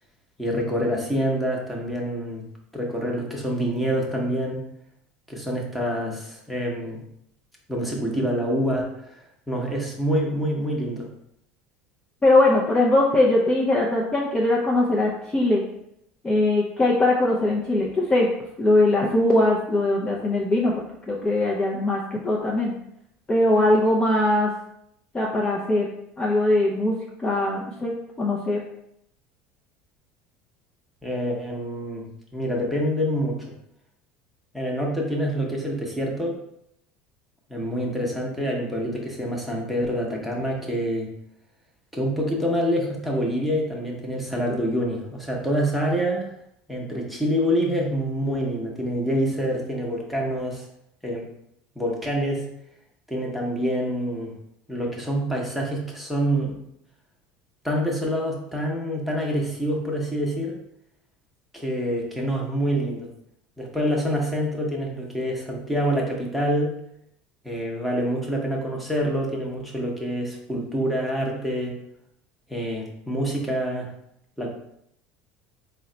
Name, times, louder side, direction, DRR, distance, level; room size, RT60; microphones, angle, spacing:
voice 1, 0.4-2.4 2.7-4.6 5.3-7.0 7.7-9.2 9.5-11.1 31.0-32.1 32.3-33.4 34.5-36.4 37.5-41.1 41.9-46.3 46.7-50.6 51.0-51.3 51.8-52.4 53.1-54.3 54.7-56.6 57.6-60.6 61.5-63.1 63.6-66.7 67.4-71.8 72.5-73.9 74.4-74.5, equal, ahead, -2 dB, 0.9 m, -26 dB
voice 2, 12.2-15.6 16.2-18.3 18.6-22.7 23.3-24.5 25.1-25.9 26.2-28.6, left 2 dB, 20° left, -3 dB, 0.6 m, -21 dB
3.8 x 2.2 x 3.8 m, 0.76 s
supercardioid pair, 105°, 5 cm